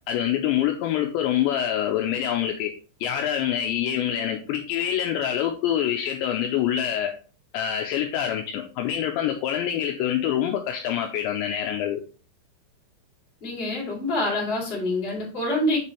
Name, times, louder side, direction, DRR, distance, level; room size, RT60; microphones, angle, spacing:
voice 1, 0.1-2.7 3.0-7.1 7.5-12.0, left 10 dB, 85° left, 3 dB, 2.6 m, -25 dB
voice 2, 13.4-15.8, left 1 dB, 15° left, -4 dB, 2.0 m, -26 dB
6.9 x 5.7 x 3.2 m, 0.37 s
omnidirectional pair, 5.7 m